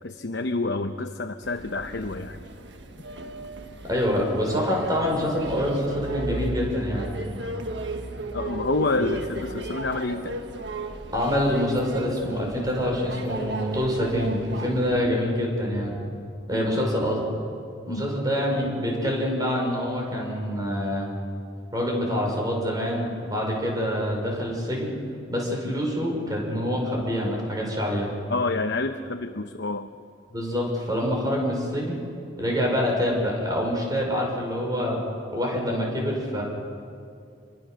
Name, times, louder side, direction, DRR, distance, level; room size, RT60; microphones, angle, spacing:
voice 1, 0.0-2.4 8.3-10.4 16.5-16.7 17.9-18.1 28.3-29.9, left 3 dB, 65° left, 6 dB, 0.9 m, -28 dB
sound 1, 1.4-15.0, right 1 dB, 70° right, 1.6 m, -35 dB
voice 2, 3.9-7.1 11.1-16.0 16.5-17.2 17.9-21.1 21.7-24.9 25.3-28.1 30.3-32.0 32.4-35.0 35.3-36.4, equal, 20° right, -1 dB, 5.9 m, -26 dB
27.0 x 23.5 x 6.5 m, 2.4 s
head